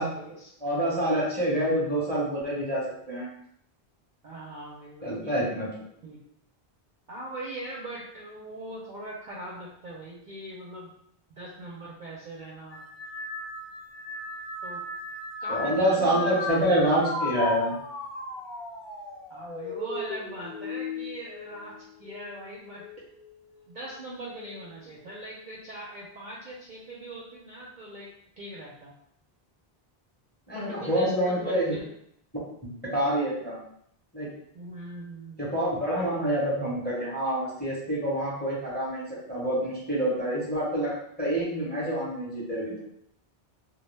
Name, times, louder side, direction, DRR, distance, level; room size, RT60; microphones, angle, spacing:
voice 1, 0.0-0.5 4.2-5.5 6.0-6.2 7.1-10.9 11.3-12.8 14.6-14.8 15.4-16.5 19.3-23.1 23.7-28.1 28.4-28.9 30.5-31.9 34.5-35.4 35.9-36.2, right 1 dB, 60° right, -4 dB, 0.6 m, -41 dB
voice 2, 0.6-3.3 5.0-5.7 15.5-17.8 30.5-31.7 32.6-33.6 34.1-34.3 35.4-42.7, right 1 dB, 10° left, -6 dB, 0.7 m, -27 dB
sound 1, 12.7-22.3 22.8-23.3 24.3-24.7, left 2 dB, 55° left, 0.7 m, -36 dB
2.2 x 2.1 x 3.2 m, 0.70 s
omnidirectional pair, 1.1 m